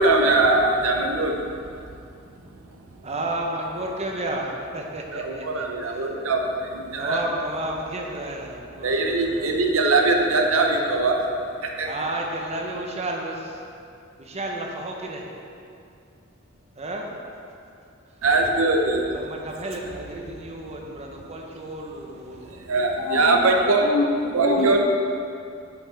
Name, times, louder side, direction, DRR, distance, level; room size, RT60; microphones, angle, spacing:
voice 1, 0.0-1.4 5.1-7.2 8.8-11.2 11.6-11.9 18.2-19.2 22.5-23.9 24.3-24.8, right 2 dB, 70° right, 2 dB, 0.8 m, -21 dB
voice 2, 3.0-6.1 7.0-9.5 11.8-13.6 14.2-15.2 16.8-17.1 19.1-22.7 24.4-24.7, right 1 dB, 30° right, 0 dB, 0.9 m, -32 dB
voice 3, 23.0-23.4 23.8-24.8, left 2 dB, 50° left, 5 dB, 0.5 m, -25 dB
8.5 x 6.5 x 3.4 m, 2.5 s
head